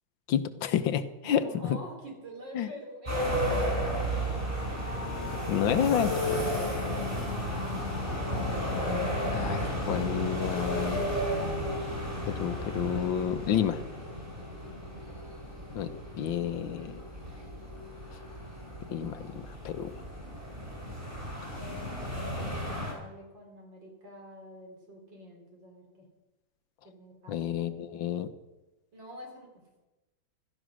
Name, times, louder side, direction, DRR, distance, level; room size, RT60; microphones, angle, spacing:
voice 1, 0.3-1.8 2.5-2.7 5.5-6.4 9.3-11.1 12.2-13.8 15.7-15.9 16.1-17.0 18.9-19.9 27.3-28.3, left 9 dB, 75° left, 11 dB, 1.6 m, -30 dB
voice 2, 1.2-3.8 7.1-7.5 14.6-15.0 21.5-26.1 26.8-27.5 28.9-29.7, equal, 65° right, 2 dB, 4.5 m, -46 dB
sound 1, 3.1-22.9, equal, 25° right, 6.3 m, -33 dB
16.5 x 13.0 x 6.3 m, 1.1 s
omnidirectional pair, 2.2 m